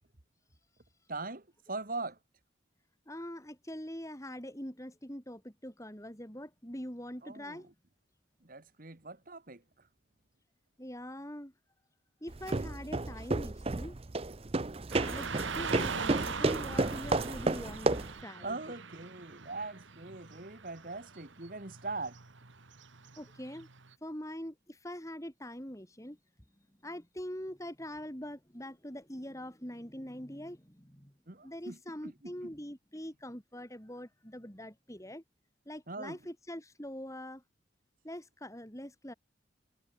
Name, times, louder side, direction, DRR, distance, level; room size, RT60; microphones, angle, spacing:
voice 1, 1.1-2.2 7.2-7.6 8.4-9.6 18.4-22.2 31.3-31.8 32.0-32.5 35.9-36.2, right 3 dB, 45° right, 1.8 m, -41 dB
voice 2, 3.1-7.7 10.8-11.5 12.2-14.0 15.1-18.6 23.2-23.7 24.0-26.2 26.8-31.1 31.4-35.2 35.7-37.4 38.0-39.1, equal, 15° left, 4.0 m, -43 dB
sound 1, 12.3-18.2, right 2 dB, 30° right, 0.7 m, -32 dB
Car passing by / Traffic noise roadway noise, 14.9-23.9, right 5 dB, 75° right, 1.8 m, -42 dB
head